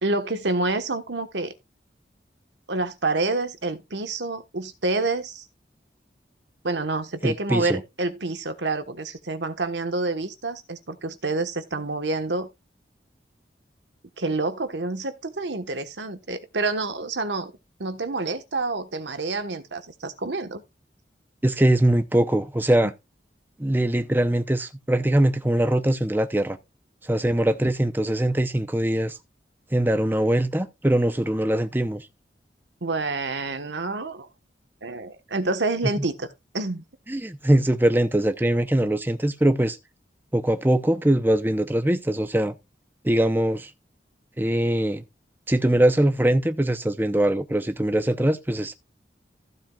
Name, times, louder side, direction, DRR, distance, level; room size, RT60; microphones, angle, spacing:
voice 1, 0.0-1.5 2.7-5.4 6.6-12.5 14.2-17.5 17.8-20.6 32.8-34.3 34.8-36.3 36.5-36.8, right 3 dB, 80° right, 1.3 m, -28 dB
voice 2, 7.2-7.8 21.4-22.9 23.6-26.6 27.0-29.2 29.7-32.1 37.1-39.8 40.3-42.5 43.0-43.7 44.4-45.0 45.5-48.7, right 1 dB, 10° right, 0.7 m, -22 dB
15.0 x 7.5 x 2.4 m
head